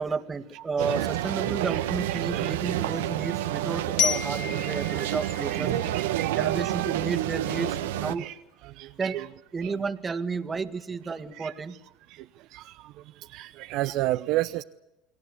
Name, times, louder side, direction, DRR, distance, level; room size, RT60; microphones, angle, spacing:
voice 1, 0.0-5.7 6.4-8.3 9.0-9.2 9.5-11.8, right 4 dB, 25° right, 1.9 m, -32 dB
voice 2, 0.5-1.1 1.5-2.8 3.0-3.1 3.7-5.1 5.5-6.5 8.2-9.3 9.6-9.8 10.1-10.2 11.3-11.8 12.1-14.6, right 16 dB, 65° right, 0.8 m, -34 dB
sound 1, 0.8-8.1, right 13 dB, 85° right, 1.4 m, -29 dB
Glockenspiel, 4.0-6.8, left 8 dB, 60° left, 2.3 m, -32 dB
29.5 x 20.5 x 8.2 m
supercardioid pair, 95°, 0 cm